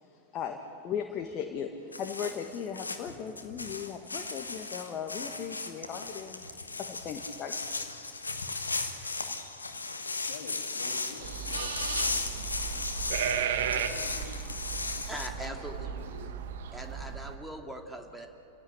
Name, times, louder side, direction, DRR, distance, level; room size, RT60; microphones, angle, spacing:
voice 1, 0.8-6.5 6.8-7.6, left 7 dB, 30° left, 4 dB, 1.6 m, -37 dB
sound 1, 1.9-15.3, left 3 dB, 80° left, 1.6 m, -36 dB
voice 2, 10.2-16.4, left 6 dB, 60° left, 3 dB, 3.2 m, -49 dB
sound 2, 11.2-17.4, right 8 dB, 55° right, 1.4 m, -35 dB
voice 3, 15.1-15.9 16.7-18.3, equal, 5° right, 3 dB, 2.2 m, -41 dB
29.0 x 16.5 x 8.5 m, 2.7 s
figure-of-eight pair, 90°, 0 cm